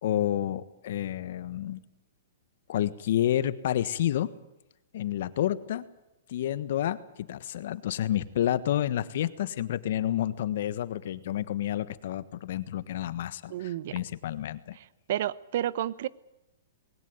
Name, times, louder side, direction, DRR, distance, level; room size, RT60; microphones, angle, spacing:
voice 1, 0.0-1.8 2.7-4.3 4.9-5.8 6.3-14.8, left 11 dB, 60° left, 15 dB, 1.4 m, -29 dB
voice 2, 13.5-14.0 14.7-16.1, right 12 dB, 55° right, 19 dB, 1.0 m, -31 dB
21.0 x 18.0 x 9.4 m, 0.92 s
hypercardioid pair, 150°, 0 cm